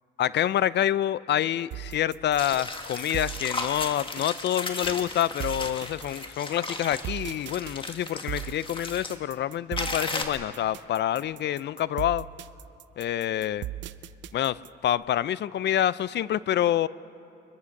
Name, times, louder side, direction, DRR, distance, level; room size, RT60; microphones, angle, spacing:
voice 1, 0.2-12.3 13.0-13.7 14.3-16.9, left 11 dB, 60° left, 18 dB, 0.5 m, -27 dB
sound 1, 1.7-14.9, right 13 dB, 70° right, 0.6 m, -39 dB
sound 2, 2.4-9.1 9.8-10.2, left 2 dB, 25° left, 2.0 m, -35 dB
23.0 x 21.5 x 6.5 m, 2.7 s
cardioid pair, 90°, 20 cm